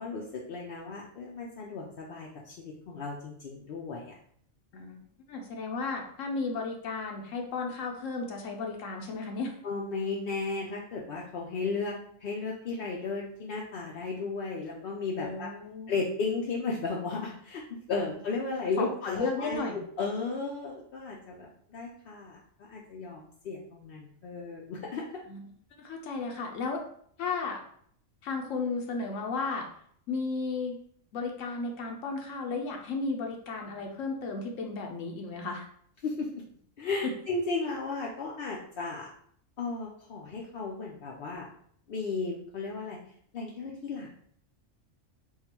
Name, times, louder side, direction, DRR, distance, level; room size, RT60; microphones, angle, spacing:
voice 1, 0.0-4.1 9.6-11.9 12.2-15.5 15.9-25.2 36.0-36.3 36.8-39.1 39.6-41.5 41.9-43.0 43.3-44.1, left 4 dB, 60° left, -2 dB, 0.6 m, -34 dB
voice 2, 5.3-9.6 15.2-15.9 18.8-19.8 25.3-25.5 25.8-26.8 27.2-27.6 28.2-29.7 30.1-30.8 31.1-35.7 37.0-37.1, left 4 dB, 75° left, 2 dB, 1.0 m, -34 dB
3.7 x 2.3 x 4.4 m, 0.63 s
omnidirectional pair, 1.3 m